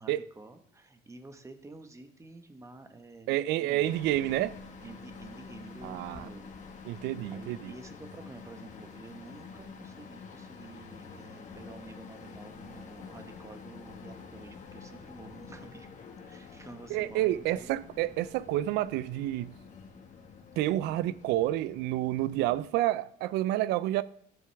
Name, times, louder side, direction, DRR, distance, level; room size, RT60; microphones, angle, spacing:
voice 1, 0.0-3.8 4.8-6.5 7.3-15.9 16.2-17.7, right 3 dB, 15° right, 1.3 m, -50 dB
voice 2, 3.3-4.6 5.8-6.3 6.8-7.7 16.9-19.5 20.6-24.0, right 14 dB, 90° right, 0.4 m, -29 dB
sound 1, 3.8-22.6, left 5 dB, 45° left, 1.7 m, -48 dB
14.5 x 7.8 x 3.5 m
cardioid pair, 110°, 17 cm